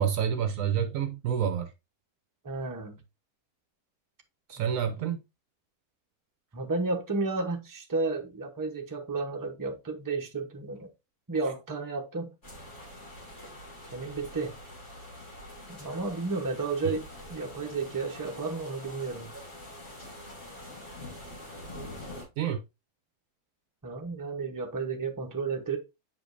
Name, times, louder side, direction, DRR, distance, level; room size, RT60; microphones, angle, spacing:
voice 1, 0.0-1.7 4.5-5.2 16.8-16.9 22.4-22.6, right 8 dB, 70° right, 1.0 m, -28 dB
voice 2, 2.4-3.0 4.6-4.9 6.5-10.9 11.3-12.3 13.9-14.5 15.7-19.3 23.8-25.8, right 3 dB, 15° right, 0.8 m, -32 dB
sound 1, 12.4-22.2, left 1 dB, 50° left, 3.1 m, -45 dB
7.3 x 5.1 x 2.6 m
omnidirectional pair, 1.6 m